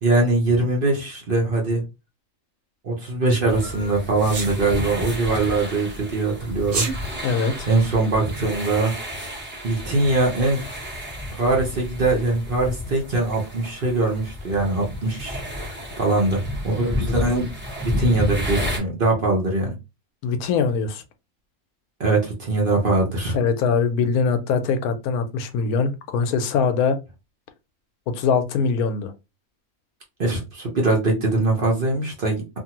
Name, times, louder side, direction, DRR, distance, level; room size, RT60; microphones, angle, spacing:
voice 1, 0.0-1.8 2.8-6.9 7.7-8.9 9.6-10.7 11.3-15.4 16.0-17.5 17.8-19.7 22.0-23.4 30.2-32.6, right 2 dB, 45° right, 0.8 m, -22 dB
sound 1, 3.5-18.8, left 1 dB, 10° right, 1.0 m, -31 dB
Sneeze, 4.3-4.5 6.6-7.0, right 4 dB, 65° right, 1.3 m, -25 dB
voice 2, 7.2-7.7 20.2-21.0 23.3-27.0 28.1-29.1, left 5 dB, 85° left, 1.1 m, -22 dB
2.6 x 2.6 x 2.8 m
omnidirectional pair, 1.5 m